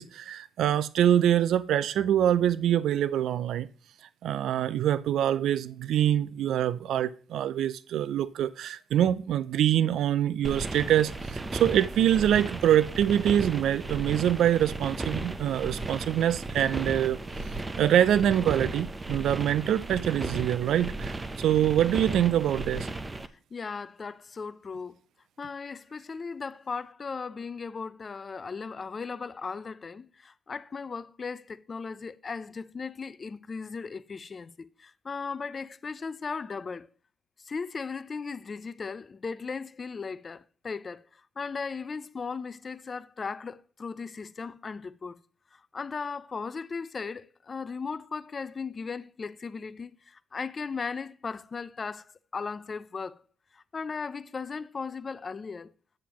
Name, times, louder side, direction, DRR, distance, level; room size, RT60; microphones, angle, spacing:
voice 1, 0.0-3.7 4.2-17.2 17.8-22.9, right 10 dB, 75° right, 0.4 m, -25 dB
sound 1, 10.4-23.3, right 2 dB, 20° right, 0.6 m, -35 dB
voice 2, 23.5-25.0 25.4-36.9 37.4-45.2 45.5-52.0 52.3-53.2 53.5-55.7, left 5 dB, 35° left, 0.5 m, -37 dB
8.5 x 7.4 x 2.9 m
cardioid pair, 90°, 0 cm